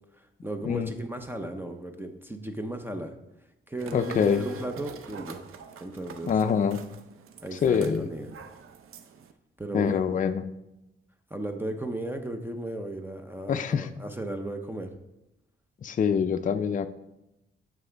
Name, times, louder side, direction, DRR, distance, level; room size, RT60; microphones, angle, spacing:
voice 1, 0.2-3.2 3.7-5.4 5.8-6.3 7.4-8.3 9.6-10.2 11.3-14.9, right 1 dB, 10° right, 6 dB, 0.6 m, -35 dB
sound 1, 3.8-9.3, right 5 dB, 90° right, 0.6 m, -44 dB
voice 2, 3.9-4.4 6.3-6.8 7.6-8.1 9.7-10.4 13.5-13.9 15.8-16.9, left 7 dB, 40° left, 8 dB, 0.4 m, -25 dB
9.4 x 6.2 x 3.4 m, 0.91 s
wide cardioid pair, 150°, 21 cm